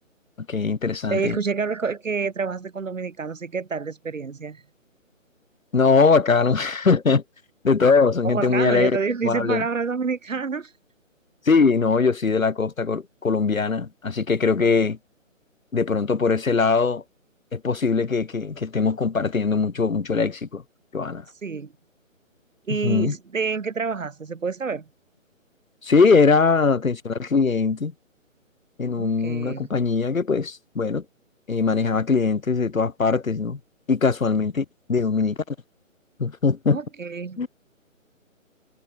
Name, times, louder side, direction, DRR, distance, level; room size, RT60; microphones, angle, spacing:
voice 1, 0.5-1.4 5.7-7.2 7.6-9.0 9.2-9.7 11.4-15.0 15.7-17.0 17.5-20.6 20.9-21.2 22.8-23.1 25.8-27.9 28.8-31.1 31.5-33.6 33.9-35.6 36.2-36.8 37.4-37.5, left 4 dB, 85° left, 2.3 m, -21 dB
voice 2, 1.1-4.6 8.2-10.7 14.6-14.7 21.4-21.7 22.7-24.9 29.0-29.7 36.7-37.4, right 5 dB, 70° right, 2.8 m, -28 dB
hypercardioid pair, 165°, 40 cm